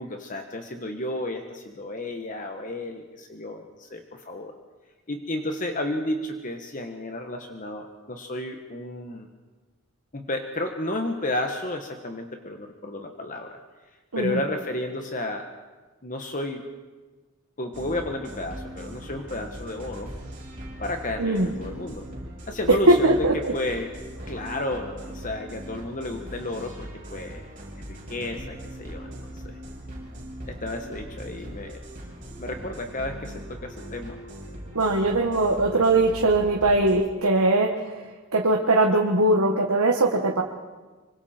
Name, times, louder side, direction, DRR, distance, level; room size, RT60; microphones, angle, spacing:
voice 1, 0.0-4.5 5.1-9.3 10.1-13.6 14.1-15.5 16.0-16.6 17.6-20.1 20.8-22.1 22.5-23.9 24.3-27.5 27.9-29.6 30.5-31.8 32.4-34.2, left 1 dB, 35° left, 4 dB, 1.3 m, -32 dB
sound 1, 17.7-37.1, equal, 40° right, 5.7 m, -40 dB
voice 2, 22.9-23.3 34.8-37.8 38.3-40.4, right 2 dB, 85° right, 0 dB, 1.7 m, -20 dB
26.0 x 24.5 x 4.4 m, 1.3 s
head